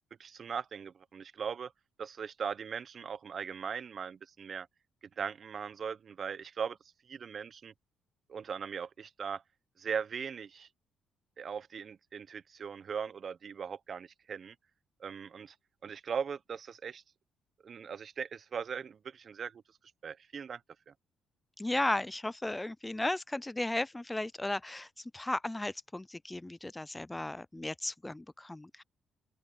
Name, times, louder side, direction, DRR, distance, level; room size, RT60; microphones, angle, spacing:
voice 1, 0.2-1.7 2.0-4.7 5.2-6.8 7.1-7.7 8.3-9.4 9.8-10.7 11.4-14.5 15.0-15.5 15.8-17.0 17.6-19.6 20.0-20.6 20.9-21.0, right 6 dB, 50° right, 0.9 m, -39 dB
voice 2, 21.6-28.8, left 2 dB, 10° left, 0.3 m, -35 dB
open air
cardioid pair, 90°, 0 cm